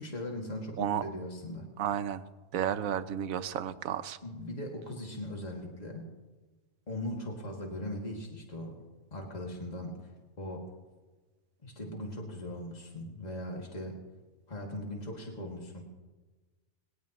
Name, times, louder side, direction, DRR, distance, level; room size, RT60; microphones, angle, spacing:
voice 1, 0.0-1.7 4.2-6.1 6.9-8.8 9.1-10.1 10.4-10.7 11.6-14.0 14.5-15.8, left 1 dB, 30° left, 0 dB, 2.2 m, -39 dB
voice 2, 1.8-2.2 2.5-4.2, right 9 dB, 85° right, 12 dB, 1.1 m, -32 dB
21.0 x 18.0 x 3.0 m, 1.2 s
omnidirectional pair, 1.4 m